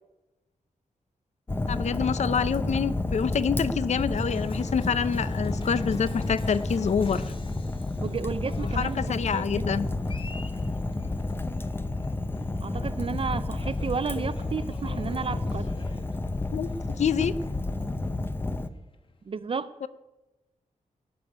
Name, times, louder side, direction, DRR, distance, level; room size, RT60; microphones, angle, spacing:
Fire, 1.5-18.7, left 2 dB, 15° left, 0.6 m, -31 dB
voice 1, 1.7-7.3 8.7-9.9 16.5-17.3 19.8-19.9, left 6 dB, 55° left, 15 dB, 0.6 m, -27 dB
Cheering, 4.1-19.3, left 2 dB, 40° left, 1.3 m, -47 dB
voice 2, 8.0-9.0 9.3-9.8 12.6-15.7 19.3-19.9, right 5 dB, 45° right, 12 dB, 0.5 m, -32 dB
18.0 x 6.9 x 10.0 m, 1.1 s
wide cardioid pair, 165°, 14 cm